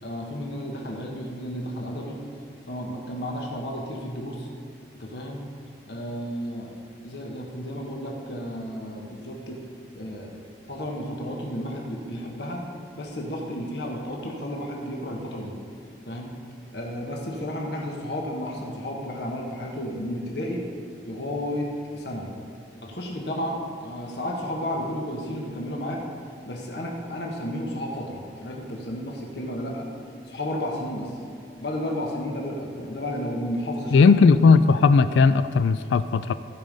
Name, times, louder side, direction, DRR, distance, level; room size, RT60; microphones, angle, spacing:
voice 1, 0.0-2.2 2.7-4.5 5.0-5.4 5.9-6.8 7.0-9.6 9.9-10.4 10.7-12.7 13.0-15.5 16.0-16.3 16.7-20.7 21.0-22.3 22.8-26.0 26.4-29.9 30.2-31.2 31.6-34.4, equal, 65° left, -1 dB, 1.3 m, -32 dB
voice 2, 33.9-36.3, left 4 dB, 85° left, 13 dB, 0.3 m, -17 dB
15.0 x 5.2 x 5.3 m, 2.4 s
head